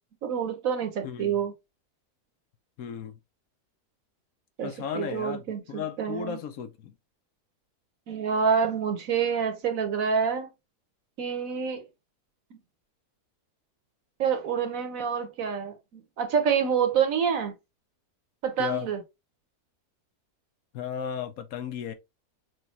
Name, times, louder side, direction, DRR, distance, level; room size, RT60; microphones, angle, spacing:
voice 1, 0.2-1.5 4.6-6.4 8.1-10.5 11.2-11.8 14.2-17.5 18.4-19.0, right 7 dB, 60° right, 1.2 m, -27 dB
voice 2, 2.8-3.2 4.6-5.4 5.7-6.9 18.6-18.9 20.7-21.9, left 8 dB, 65° left, 1.1 m, -34 dB
6.2 x 2.2 x 2.8 m
omnidirectional pair, 1.7 m